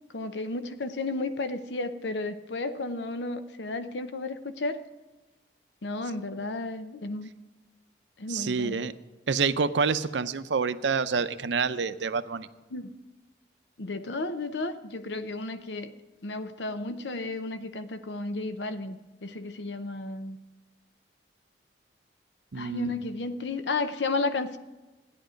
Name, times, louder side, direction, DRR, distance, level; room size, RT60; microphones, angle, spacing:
voice 1, 0.1-4.8 5.8-7.3 8.2-8.8 12.7-12.9 13.8-15.9 16.2-20.4 22.5-24.6, left 3 dB, 80° left, 10 dB, 0.8 m, -33 dB
voice 2, 8.3-8.9 9.3-12.5 22.5-22.9, right 5 dB, 90° right, 11 dB, 0.6 m, -27 dB
14.0 x 10.5 x 5.1 m, 1.1 s
head